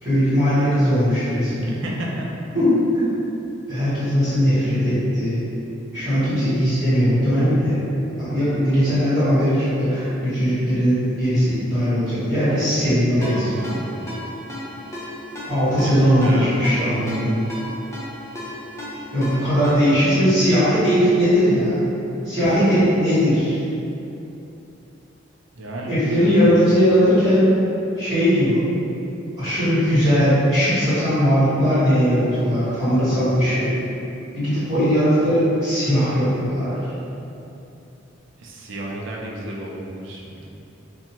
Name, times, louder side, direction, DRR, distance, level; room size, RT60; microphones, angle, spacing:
voice 1, 0.0-1.8 2.5-3.0 3.7-5.4 5.9-7.8 8.1-13.7 15.5-17.3 19.1-21.8 22.2-23.6 25.9-27.5 28.0-28.6 29.4-33.7 34.3-36.9, equal, 20° right, -18 dB, 1.3 m, -19 dB
voice 2, 1.6-2.3 13.1-13.9 15.8-16.6 20.1-20.3 22.4-22.7 25.5-26.5 38.4-40.5, right 1 dB, 65° right, -3 dB, 0.4 m, -32 dB
Ringtone, 13.2-20.1, left 1 dB, 15° left, 0.5 m, -35 dB
2.6 x 2.2 x 2.9 m, 2.8 s
head